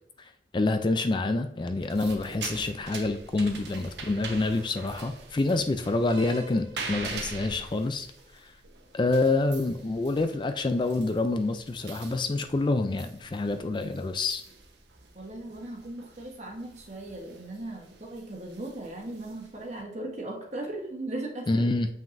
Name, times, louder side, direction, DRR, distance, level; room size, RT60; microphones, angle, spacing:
voice 1, 0.2-8.1 8.3-8.5 8.9-14.4 21.5-21.9, left 2 dB, 25° left, 8 dB, 0.3 m, -27 dB
sound 1, 1.7-19.8, right 4 dB, 80° right, 1.1 m, -44 dB
voice 2, 2.3-2.7 15.1-21.7, right 2 dB, 40° right, 1 dB, 1.3 m, -38 dB
7.1 x 5.7 x 2.6 m, 0.78 s
head